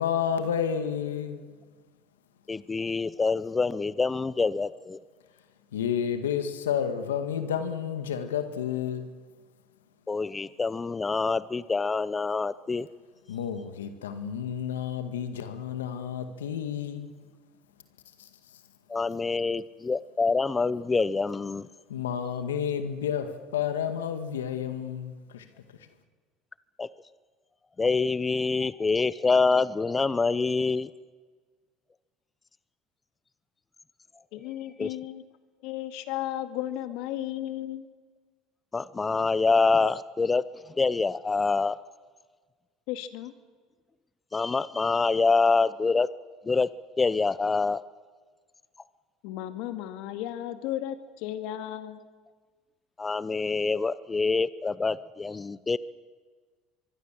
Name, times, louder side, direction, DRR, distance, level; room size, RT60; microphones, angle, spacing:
voice 1, 0.0-1.5 5.7-9.1 13.3-17.1 18.2-18.3 21.9-25.5, left 8 dB, 90° left, 2.0 m, -30 dB
voice 2, 2.5-5.0 10.1-12.9 18.9-21.7 26.8-26.9 27.8-30.9 34.8-34.9 38.7-40.4 40.8-41.8 44.3-46.1 46.5-46.7 47.0-47.8 53.0-55.8, left 4 dB, 20° left, 0.7 m, -26 dB
voice 3, 34.3-35.2 35.6-37.9 42.9-43.3 49.2-52.0, left 13 dB, 70° left, 2.2 m, -34 dB
24.0 x 23.5 x 7.6 m
hypercardioid pair, 75°, 0 cm